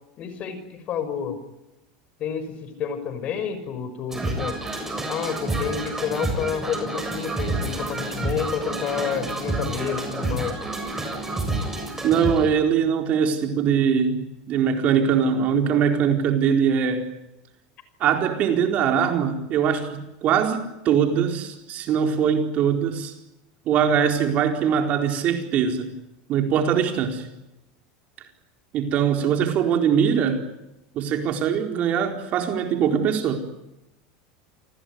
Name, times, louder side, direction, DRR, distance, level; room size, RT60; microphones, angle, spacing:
voice 1, 0.2-1.4 2.2-4.6 5.1-10.6 19.0-19.1, left 7 dB, 40° left, 6.1 m, -29 dB
sound 1, 4.1-12.5, right 2 dB, 10° right, 7.1 m, -29 dB
voice 2, 12.0-17.1 18.0-23.1 23.7-25.9 26.3-27.3 28.7-30.4 30.9-33.5, right 7 dB, 45° right, 4.4 m, -22 dB
29.0 x 20.0 x 9.5 m
supercardioid pair, 130°, 3 cm